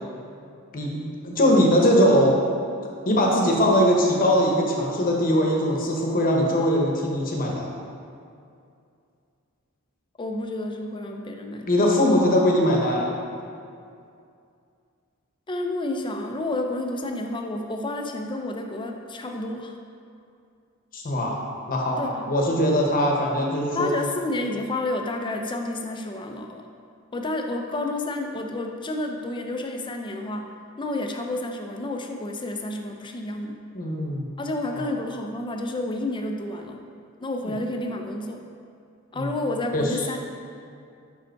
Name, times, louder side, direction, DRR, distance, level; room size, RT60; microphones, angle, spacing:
voice 1, 0.7-2.3 3.0-7.7 11.7-13.1 20.9-21.4 21.7-23.9 33.7-34.3 39.1-39.3 39.7-39.9, equal, 40° left, -1 dB, 0.9 m, -21 dB
voice 2, 10.2-11.9 15.5-19.7 22.0-22.3 23.7-26.6 27.1-30.5 30.8-33.6 34.4-36.8 37.2-38.4 39.1-40.2, left 2 dB, 20° left, 3 dB, 0.5 m, -30 dB
5.6 x 5.1 x 4.5 m, 2.4 s
head